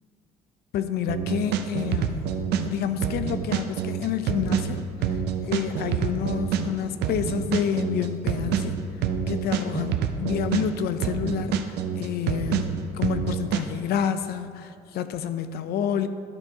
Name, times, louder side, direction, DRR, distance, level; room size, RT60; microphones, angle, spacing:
voice 1, 0.7-4.8 5.1-8.8 9.3-16.1, left 8 dB, 70° left, 11 dB, 0.5 m, -29 dB
sound 1, 1.1-2.7 3.0-6.7 7.0-10.7 11.0-13.6, right 8 dB, 80° right, 0.6 m, -27 dB
11.5 x 4.4 x 4.7 m, 2.3 s
cardioid pair, 110°, 17 cm